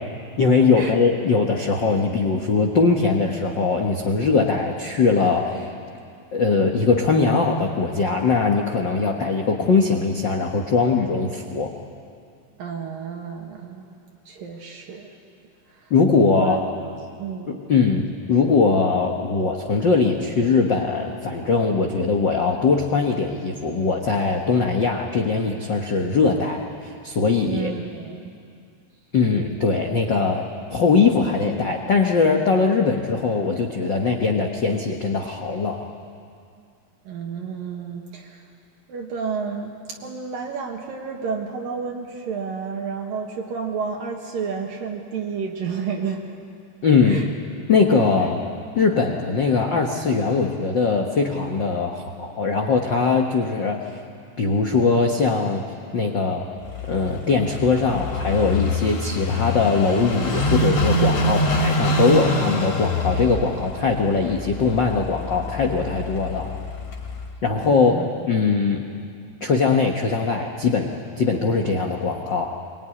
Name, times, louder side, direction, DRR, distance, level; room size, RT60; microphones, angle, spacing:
voice 1, 0.4-5.7 6.3-11.7 15.9-16.6 17.5-26.7 27.0-27.7 29.1-35.8 46.8-47.3 47.7-48.4 48.7-53.8 54.4-55.6 55.9-56.5 56.9-66.5 67.4-68.0 68.3-68.9 69.4-72.5, left 4 dB, 75° left, 2 dB, 1.0 m, -21 dB
voice 2, 12.6-13.9 14.3-15.1 16.2-16.6 17.2-17.6 27.4-28.2 37.1-38.4 38.9-39.7 40.0-46.4 47.0-47.3 67.6-68.1, right 6 dB, 70° right, 0 dB, 3.3 m, -30 dB
Car passing by / Idling, 56.7-67.3, left 1 dB, 55° left, 3.9 m, -25 dB
23.0 x 22.5 x 9.9 m, 2.4 s
omnidirectional pair, 4.3 m